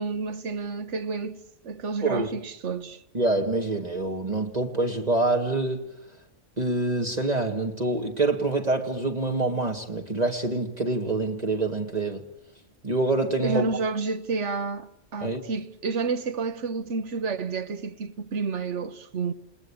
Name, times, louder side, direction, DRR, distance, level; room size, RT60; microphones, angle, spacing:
voice 1, 0.0-3.0 13.4-19.3, right 4 dB, 70° right, 1.5 m, -30 dB
voice 2, 3.1-5.9 6.6-12.3 12.8-13.7 15.2-15.4, right 2 dB, 35° right, 1.9 m, -26 dB
29.0 x 19.5 x 8.5 m
omnidirectional pair, 1.3 m